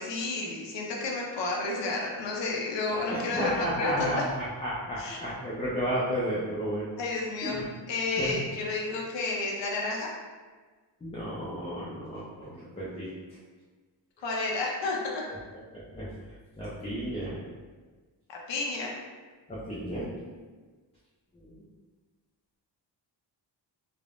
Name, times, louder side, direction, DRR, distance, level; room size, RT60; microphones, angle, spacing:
voice 1, 0.0-4.2 5.0-5.2 7.0-7.6 7.9-10.1 14.2-15.2 18.3-18.9, left 3 dB, 70° left, -2 dB, 0.6 m, -31 dB
voice 2, 2.9-6.9 7.4-7.7 8.2-8.4 11.0-13.1 15.7-16.1 16.6-17.4 19.5-20.1 21.3-21.5, equal, 15° left, -8 dB, 0.4 m, -32 dB
3.3 x 2.0 x 2.4 m, 1.4 s
wide cardioid pair, 135°, 45 cm